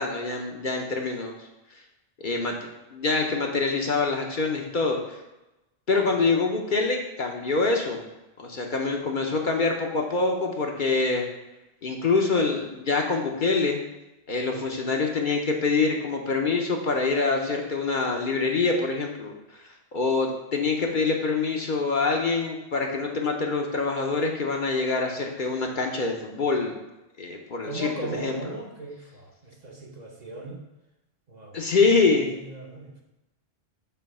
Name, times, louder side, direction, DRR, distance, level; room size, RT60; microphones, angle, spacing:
voice 1, 0.0-1.3 2.2-2.6 2.9-5.2 5.9-8.0 8.4-11.2 11.8-13.8 14.3-19.6 19.9-26.8 27.2-28.5 31.5-32.3, left 4 dB, 50° left, 1 dB, 0.8 m, -25 dB
voice 2, 27.6-30.6 31.3-31.6 32.3-33.0, right 2 dB, 45° right, -1 dB, 0.9 m, -38 dB
6.8 x 2.8 x 5.3 m, 0.98 s
omnidirectional pair, 1.1 m